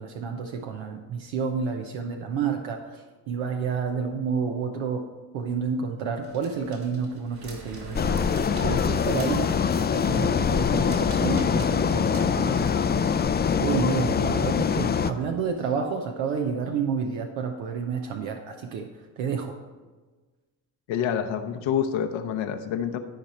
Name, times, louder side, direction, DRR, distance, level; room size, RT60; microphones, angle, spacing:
voice 1, 0.0-5.0 5.3-18.9 19.2-19.6, right 6 dB, 70° right, 4 dB, 0.9 m, -30 dB
sound 1, 6.2-13.1, right 2 dB, 50° right, 2.9 m, -42 dB
sound 2, 7.9-15.1, left 6 dB, 20° left, 0.4 m, -24 dB
voice 2, 20.9-23.0, left 8 dB, 65° left, 7 dB, 0.9 m, -27 dB
13.0 x 5.1 x 4.3 m, 1.3 s
hypercardioid pair, 55°, 49 cm